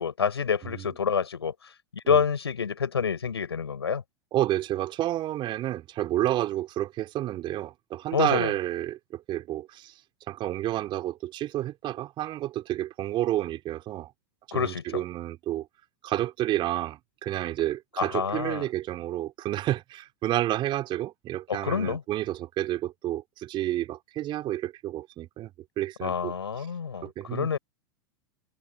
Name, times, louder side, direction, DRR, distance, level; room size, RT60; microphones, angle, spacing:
voice 1, 0.0-1.5 1.9-4.0 8.1-8.5 14.5-15.0 18.0-18.7 21.5-22.0 26.0-27.6, left 6 dB, 80° left, 5.2 m, -27 dB
voice 2, 4.3-9.9 10.3-14.1 14.5-15.7 16.0-25.5 25.8-26.7 27.0-27.6, right 14 dB, 40° right, 3.2 m, -30 dB
figure-of-eight pair, 95°, 13 cm